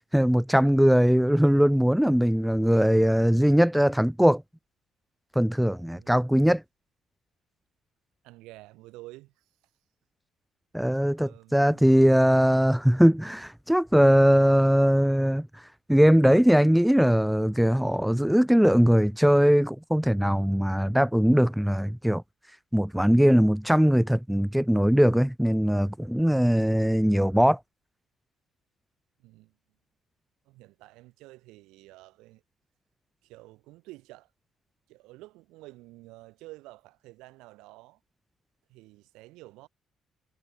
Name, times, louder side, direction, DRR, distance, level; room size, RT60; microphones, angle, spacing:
voice 1, 0.1-4.4 5.4-6.6 10.7-15.5 15.9-22.2 22.7-27.6, equal, 5° right, 0.8 m, -21 dB
voice 2, 5.9-6.2 8.2-9.4 11.2-12.2 29.2-29.5 30.5-32.4 33.2-34.3 34.9-38.0 38.7-39.7, right 20 dB, 75° right, 7.9 m, -50 dB
hypercardioid pair, 50°, 0 cm